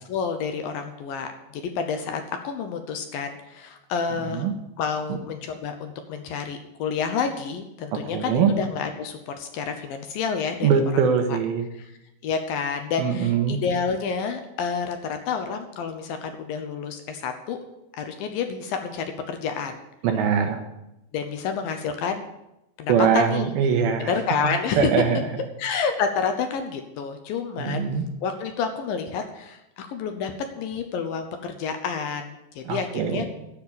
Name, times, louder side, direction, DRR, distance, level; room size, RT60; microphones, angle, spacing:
voice 1, 0.1-4.5 4.8-10.7 11.3-11.4 11.7-11.9 12.2-17.6 18.0-19.8 21.1-22.3 22.8-23.5 24.0-24.9 25.6-27.8 28.2-33.3, left 6 dB, 70° left, 6 dB, 2.4 m, -29 dB
voice 2, 7.9-8.5 10.6-11.7 13.0-13.6 20.0-20.6 22.9-24.1 24.8-25.2 27.6-28.0 32.7-33.3, right 7 dB, 75° right, 5 dB, 2.7 m, -22 dB
11.0 x 7.3 x 8.6 m, 0.88 s
omnidirectional pair, 4.7 m